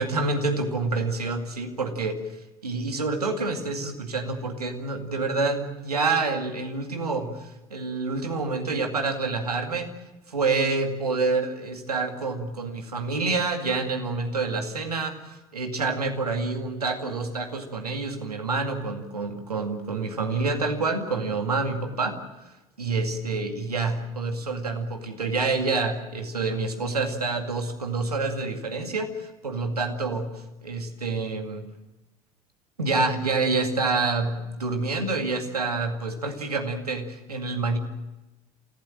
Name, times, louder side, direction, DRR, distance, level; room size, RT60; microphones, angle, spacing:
voice 1, 0.0-2.2 2.6-9.9 10.3-22.1 22.8-30.3 30.6-31.7 32.8-37.8, right 3 dB, 80° right, 5 dB, 2.3 m, -27 dB
28.0 x 16.0 x 7.6 m, 1.0 s
figure-of-eight pair, 65°, 19 cm